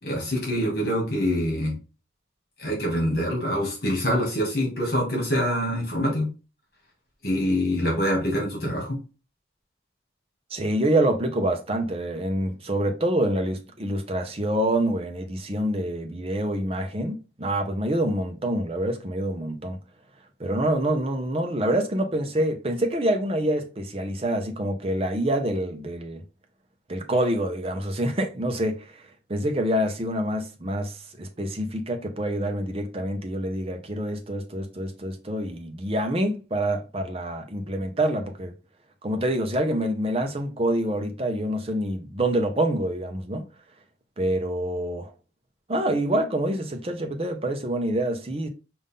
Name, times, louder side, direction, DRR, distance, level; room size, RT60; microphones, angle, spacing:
voice 1, 0.0-1.8 2.6-6.3 7.2-9.0, equal, 55° left, 2.0 m, -25 dB
voice 2, 10.5-19.8 20.4-26.2 26.9-38.5 39.0-43.4 44.2-45.1 45.7-48.5, right 1 dB, 30° right, 0.7 m, -26 dB
5.3 x 2.6 x 3.6 m
head